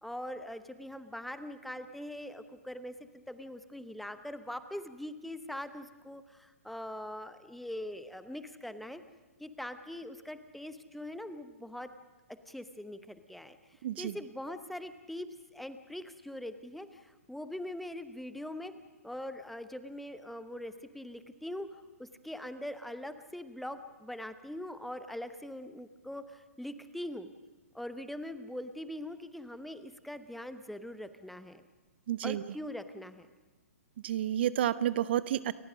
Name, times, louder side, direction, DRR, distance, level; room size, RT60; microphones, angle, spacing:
voice 1, 0.0-9.0 9.4-11.9 12.5-18.7 19.0-21.7 22.0-27.3 27.7-31.6 32.2-33.3, left 1 dB, ahead, 11 dB, 0.9 m, -42 dB
voice 2, 13.8-14.1 32.1-32.4 34.0-35.5, right 11 dB, 45° right, 17 dB, 0.5 m, -30 dB
29.5 x 15.0 x 6.3 m, 1.2 s
figure-of-eight pair, 115°, 8 cm